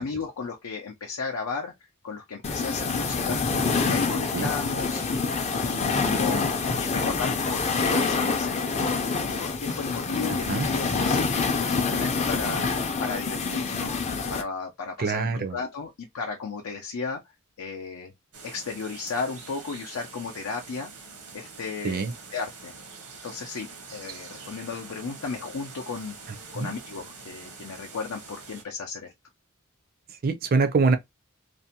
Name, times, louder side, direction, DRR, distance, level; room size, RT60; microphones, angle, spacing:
voice 1, 0.0-1.7 2.0-3.4 3.8-6.5 6.8-12.7 13.0-14.0 14.3-17.2 17.6-18.1 18.4-20.9 21.3-22.7 23.2-26.2 26.5-29.1, left 4 dB, 85° left, 0.5 m, -34 dB
sound 1, 2.4-14.4, left 4 dB, 30° left, 0.4 m, -26 dB
voice 2, 15.0-15.6 21.8-22.1 26.5-26.7 30.2-31.0, right 4 dB, 45° right, 0.4 m, -24 dB
sound 2, 18.3-28.6, right 4 dB, 85° right, 0.8 m, -45 dB
2.6 x 2.1 x 2.7 m
head